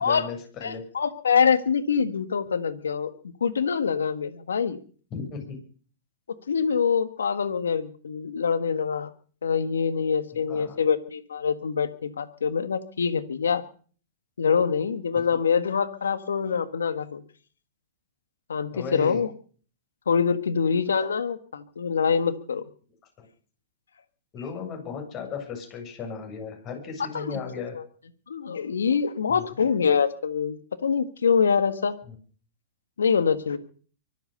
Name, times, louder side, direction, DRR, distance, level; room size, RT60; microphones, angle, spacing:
voice 1, 0.0-0.8 5.1-5.4 10.5-10.8 18.7-19.2 23.2-23.3 24.3-27.7 29.3-29.5 32.1-32.2, left 5 dB, 35° left, 2 dB, 7.7 m, -36 dB
voice 2, 0.6-3.1 3.4-4.8 6.5-9.1 9.4-13.6 14.4-17.2 18.5-19.3 20.1-22.6 27.1-27.4 27.8-27.9 28.3-31.9 33.0-33.6, left 6 dB, 90° left, 12 dB, 1.7 m, -25 dB
24.0 x 8.2 x 6.9 m, 0.43 s
hypercardioid pair, 120°, 0 cm